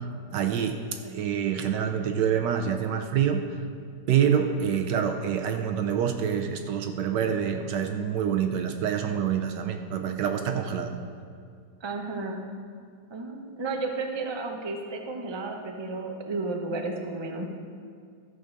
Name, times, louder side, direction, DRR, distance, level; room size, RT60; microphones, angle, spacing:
voice 1, 0.3-3.4 4.1-10.9, right 8 dB, 75° right, 5 dB, 1.3 m, -26 dB
voice 2, 11.8-12.4 13.1-17.5, right 3 dB, 35° right, 2 dB, 0.4 m, -32 dB
13.0 x 6.6 x 5.3 m, 2.2 s
omnidirectional pair, 2.0 m